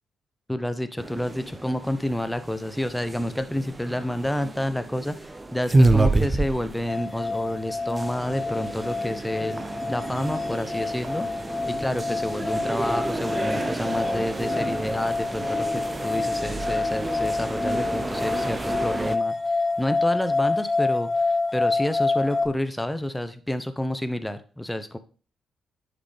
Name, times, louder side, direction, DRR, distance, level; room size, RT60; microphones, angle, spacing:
voice 1, 0.5-11.3 11.6-25.0, left 1 dB, 10° left, 10 dB, 0.7 m, -29 dB
sound 1, 1.0-19.2, right 2 dB, 25° right, 0.6 m, -29 dB
sound 2, 6.9-22.5, left 3 dB, 30° left, 1.0 m, -28 dB
9.6 x 4.0 x 3.3 m, 0.39 s
hypercardioid pair, 40°, 0 cm